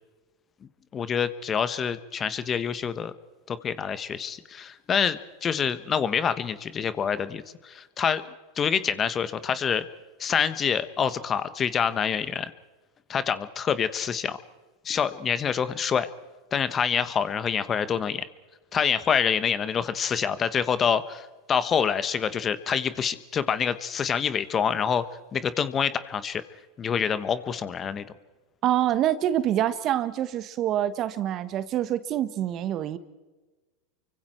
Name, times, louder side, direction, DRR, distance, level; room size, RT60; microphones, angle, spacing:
voice 1, 0.9-3.1 3.5-8.2 8.6-9.8 10.2-12.5 13.1-14.4 14.8-16.1 16.5-18.2 18.7-25.0 25.3-26.4 26.8-28.0, left 7 dB, 30° left, 14 dB, 1.3 m, -26 dB
voice 2, 28.6-33.0, right 11 dB, 45° right, 14 dB, 1.3 m, -26 dB
29.5 x 24.0 x 4.5 m, 1.2 s
hypercardioid pair, 95°, 0 cm